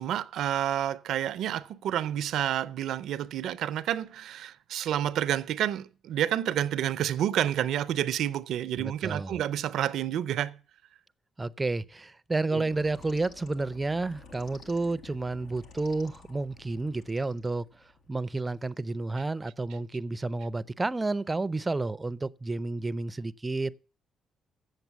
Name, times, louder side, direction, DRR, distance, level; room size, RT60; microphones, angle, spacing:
voice 1, 0.0-10.6 12.5-12.6, right 11 dB, 80° right, 0.5 m, -29 dB
voice 2, 8.8-9.4 11.4-23.8, right 3 dB, 20° right, 0.5 m, -31 dB
sound 1, 12.7-18.7, left 4 dB, 75° left, 1.5 m, -52 dB
7.7 x 7.3 x 8.0 m
cardioid pair, 90°, 0 cm